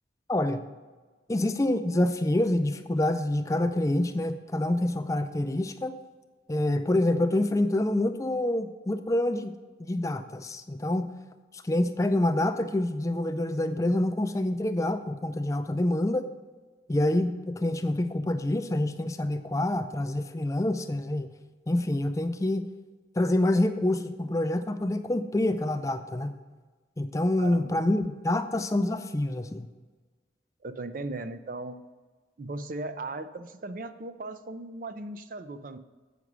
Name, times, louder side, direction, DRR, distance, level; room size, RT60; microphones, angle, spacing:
voice 1, 0.3-0.6 1.3-6.0 6.5-9.5 9.8-11.1 11.5-16.3 16.9-21.3 21.7-22.6 23.2-26.3 27.0-29.7, left 1 dB, 20° left, 9 dB, 0.4 m, -27 dB
voice 2, 27.4-27.9 30.6-31.8 32.4-35.8, right 2 dB, 50° right, 10 dB, 0.4 m, -37 dB
8.1 x 6.0 x 6.1 m, 1.3 s
head